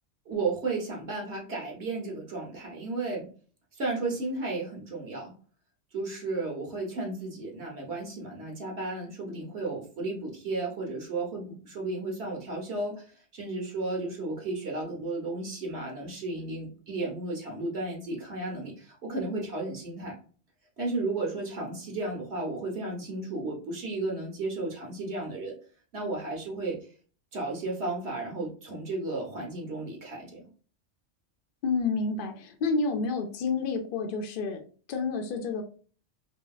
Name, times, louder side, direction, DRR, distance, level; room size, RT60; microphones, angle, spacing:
voice 1, 0.3-3.3 3.7-5.3 5.9-20.2 20.8-25.6 25.9-26.8 27.3-30.4, right 2 dB, 65° right, -1 dB, 1.2 m, -33 dB
voice 2, 31.6-34.6 34.9-35.6, left 4 dB, 60° left, 5 dB, 0.6 m, -29 dB
2.9 x 2.8 x 2.3 m, 0.40 s
omnidirectional pair, 1.2 m